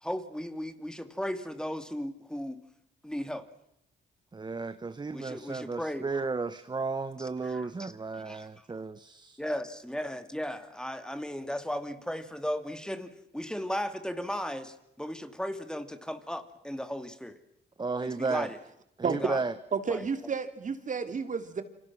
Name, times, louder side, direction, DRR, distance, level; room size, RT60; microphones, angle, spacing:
voice 1, 0.0-2.6 3.0-3.5 5.1-6.1 7.2-7.9 8.3-8.5 9.4-17.4 18.0-18.6 19.2-19.4 19.9-20.0, equal, 5° left, 9 dB, 2.5 m, -36 dB
voice 2, 4.3-9.4 17.8-18.5 19.0-19.5, right 4 dB, 20° right, 12 dB, 1.0 m, -34 dB
voice 3, 19.7-21.6, right 5 dB, 40° right, 9 dB, 2.8 m, -31 dB
29.0 x 26.5 x 6.2 m, 0.81 s
cardioid pair, 90°, 20 cm